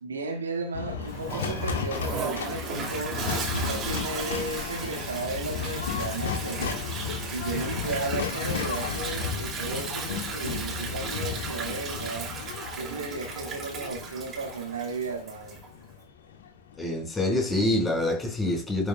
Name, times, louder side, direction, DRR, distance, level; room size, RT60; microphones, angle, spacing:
voice 1, 0.0-6.8 7.3-12.3 12.7-15.6, right 3 dB, 70° right, 1.7 m, -34 dB
sound 1, 0.7-17.0, left 6 dB, 65° left, 1.8 m, -34 dB
Toilet flush, 1.1-15.7, right 5 dB, 25° right, 2.6 m, -36 dB
voice 2, 16.8-18.9, left 1 dB, 15° left, 4.7 m, -26 dB
11.5 x 8.3 x 2.2 m
figure-of-eight pair, 90°, 0 cm